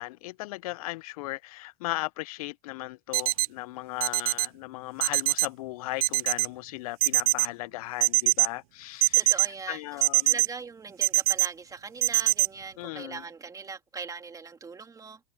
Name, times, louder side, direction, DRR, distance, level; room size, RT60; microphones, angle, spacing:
voice 1, 0.0-9.3 9.7-10.3 12.8-13.2, left 20 dB, 65° left, 0.4 m, -37 dB
sound 1, 3.1-3.5 4.0-4.5 5.0-5.5 6.0-6.5 7.0-7.5 8.0-8.5 9.0-9.5 10.0-10.5 11.0-11.5 12.0-12.5, right 20 dB, 60° right, 0.5 m, -22 dB
voice 2, 9.1-9.8 10.2-15.2, right 5 dB, 15° right, 2.8 m, -40 dB
hypercardioid pair, 110°, 20 cm